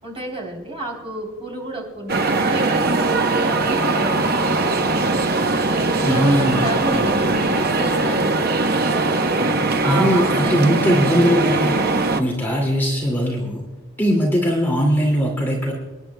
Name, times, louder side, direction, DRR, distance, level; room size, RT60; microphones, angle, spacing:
voice 1, 0.0-10.9, right 1 dB, 25° right, -1 dB, 3.3 m, -31 dB
sound 1, 2.1-12.2, right 3 dB, 45° right, 0.8 m, -20 dB
voice 2, 6.0-7.2 9.8-11.8 12.2-13.6 14.0-15.7, equal, 10° left, -3 dB, 2.3 m, -20 dB
28.0 x 10.5 x 2.2 m, 1.3 s
head